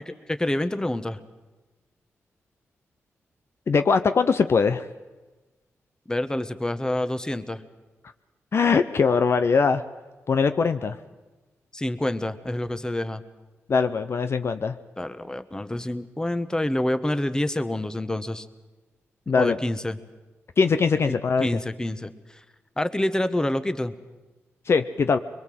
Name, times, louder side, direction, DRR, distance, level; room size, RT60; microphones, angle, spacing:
voice 1, 0.3-1.2 6.1-7.6 11.7-13.2 15.0-18.5 19.4-20.0 21.4-22.4 22.8-23.9, left 1 dB, 15° left, 12 dB, 1.2 m, -27 dB
voice 2, 3.7-4.9 8.5-9.8 10.3-11.0 13.7-14.8 19.3-19.6 20.6-21.5 24.7-25.2, left 5 dB, 55° left, 10 dB, 0.8 m, -21 dB
23.0 x 22.0 x 7.8 m, 1.2 s
cardioid pair, 70°, 5 cm